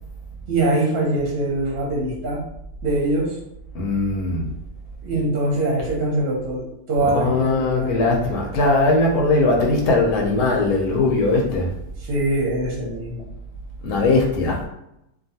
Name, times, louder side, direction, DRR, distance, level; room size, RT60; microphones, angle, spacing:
voice 1, 0.5-2.4 2.8-3.4 5.0-8.2 12.0-13.3, right 2 dB, 55° right, -4 dB, 0.7 m, -23 dB
voice 2, 3.7-4.5 7.1-11.7 13.8-14.7, left 2 dB, 85° left, -1 dB, 1.1 m, -20 dB
2.5 x 2.3 x 2.7 m, 0.81 s
omnidirectional pair, 1.6 m